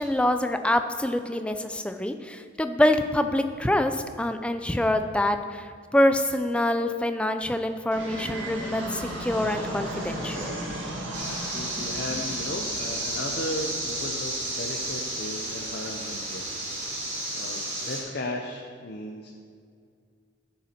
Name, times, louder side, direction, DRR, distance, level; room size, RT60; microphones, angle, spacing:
voice 1, 0.0-10.5, left 1 dB, 5° left, 8 dB, 0.3 m, -25 dB
Fixed-wing aircraft airplane, 7.9-16.9, right 1 dB, 75° right, 1.7 m, -37 dB
sound 1, 11.1-18.0, right 1 dB, 35° right, 2.2 m, -32 dB
voice 2, 11.3-16.5 16.8-17.0 17.3-19.3, left 1 dB, 55° left, 0 dB, 0.6 m, -36 dB
12.5 x 5.5 x 4.4 m, 2.2 s
head